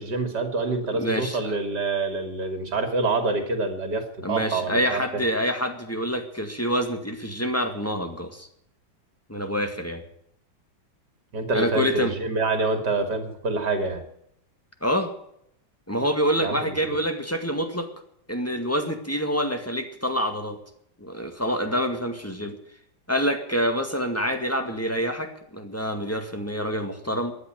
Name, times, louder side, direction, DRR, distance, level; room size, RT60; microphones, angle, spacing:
voice 1, 0.0-5.2 11.3-14.0 16.4-16.8, right 3 dB, 55° right, 7 dB, 3.2 m, -26 dB
voice 2, 0.9-1.5 4.2-8.5 9.3-10.0 11.5-12.1 14.8-15.1 15.9-17.9 18.3-20.6 21.0-22.5 23.1-27.3, equal, 10° left, 6 dB, 1.8 m, -26 dB
14.5 x 10.5 x 9.2 m, 0.75 s
omnidirectional pair, 2.1 m